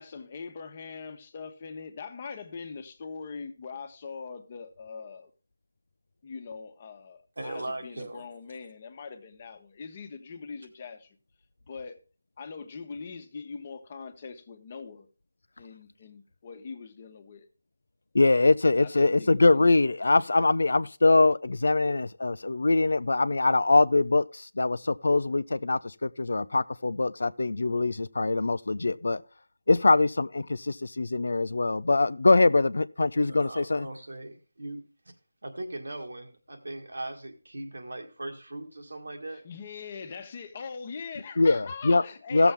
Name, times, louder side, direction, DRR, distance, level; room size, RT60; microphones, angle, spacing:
voice 1, 0.0-5.3 6.2-11.2 11.7-12.0 12.4-15.1 15.6-17.5 18.7-19.7 39.3-42.5, left 5 dB, 35° left, 1.1 m, -42 dB
voice 2, 7.4-8.2 33.3-34.8 35.4-39.4, right 2 dB, 75° right, 1.9 m, -39 dB
voice 3, 18.1-29.2 29.7-33.9 41.4-42.0 42.3-42.5, left 3 dB, 70° left, 0.4 m, -23 dB
15.0 x 7.0 x 3.5 m
figure-of-eight pair, 165°, 0 cm